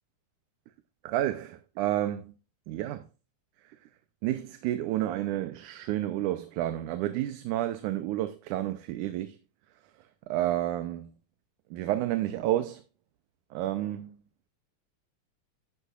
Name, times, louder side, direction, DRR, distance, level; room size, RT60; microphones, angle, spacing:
voice 1, 1.0-2.3 2.7-3.0 4.2-9.4 10.3-11.1 11.7-12.8 13.5-14.2, right 13 dB, 80° right, 2.2 m, -30 dB
12.5 x 8.2 x 2.4 m
omnidirectional pair, 3.6 m